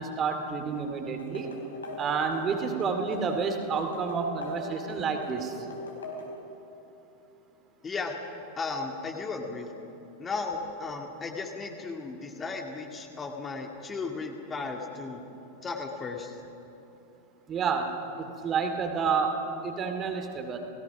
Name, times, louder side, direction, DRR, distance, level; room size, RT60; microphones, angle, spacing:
voice 1, 0.0-1.5 2.0-5.5 17.5-20.6, right 5 dB, 25° right, 5 dB, 2.4 m, -30 dB
sound 1, 1.2-6.4, left 1 dB, 70° left, 4.3 m, -40 dB
voice 2, 7.8-8.2 8.6-9.7 10.2-15.2 15.6-16.4, left 4 dB, 20° left, 3 dB, 2.1 m, -35 dB
30.0 x 18.0 x 6.1 m, 2.9 s
figure-of-eight pair, 90°, 0 cm